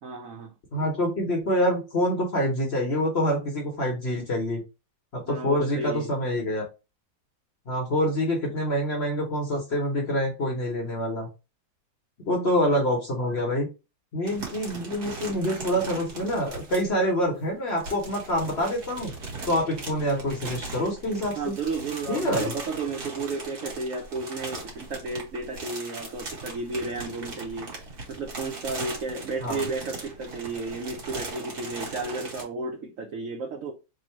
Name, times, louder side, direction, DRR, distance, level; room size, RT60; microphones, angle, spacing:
voice 1, 0.0-0.5 5.3-6.1 13.2-13.5 21.3-27.7 28.1-33.7, right 3 dB, 80° right, 0.7 m, -33 dB
voice 2, 0.7-4.6 5.1-6.6 7.7-11.3 12.3-13.7 14.1-19.1 19.5-21.5 22.1-22.5 29.4-29.7, equal, 45° left, 0.9 m, -26 dB
sound 1, 14.2-17.0 17.6-32.4, right 3 dB, 55° right, 1.7 m, -39 dB
3.6 x 2.1 x 4.4 m
omnidirectional pair, 2.1 m